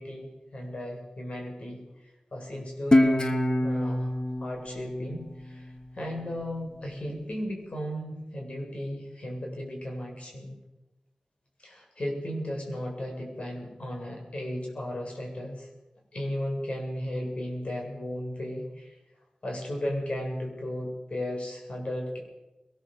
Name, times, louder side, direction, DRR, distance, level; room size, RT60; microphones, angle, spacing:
voice 1, 0.0-1.8 2.3-3.3 3.6-4.1 4.4-10.5 11.6-15.7 16.1-18.9 19.4-22.2, left 1 dB, 60° left, 1 dB, 7.9 m, -35 dB
Guitar, 2.9-6.1, left 1 dB, 35° left, 2.4 m, -26 dB
22.0 x 19.5 x 8.0 m, 1.1 s
wide cardioid pair, 70°, 2 cm